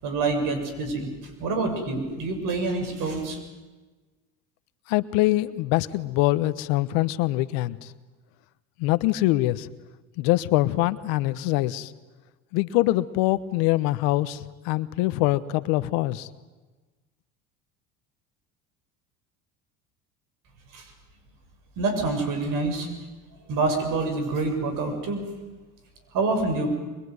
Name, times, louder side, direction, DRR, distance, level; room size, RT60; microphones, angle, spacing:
voice 1, 0.0-1.1 1.4-3.4 20.7-20.8 21.8-22.9 23.5-25.2 26.1-26.7, right 3 dB, 60° right, 6 dB, 7.3 m, -26 dB
voice 2, 4.9-7.9 8.8-9.7 10.2-11.9 12.5-16.3, left 17 dB, 70° left, 15 dB, 1.2 m, -24 dB
24.0 x 22.5 x 9.7 m, 1.2 s
supercardioid pair, 90°, 36 cm